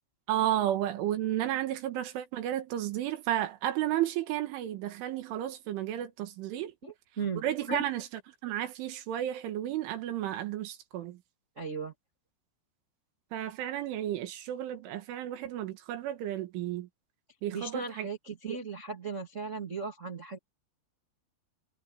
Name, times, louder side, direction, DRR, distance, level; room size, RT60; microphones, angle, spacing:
voice 1, 0.3-6.7 7.4-8.1 8.4-11.2 13.3-16.9 17.4-18.1 18.5-18.6, right 12 dB, 80° right, 4.2 m, -32 dB
voice 2, 6.8-7.8 11.5-11.9 17.5-20.4, right 4 dB, 45° right, 0.9 m, -37 dB
omnidirectional pair, 5.5 m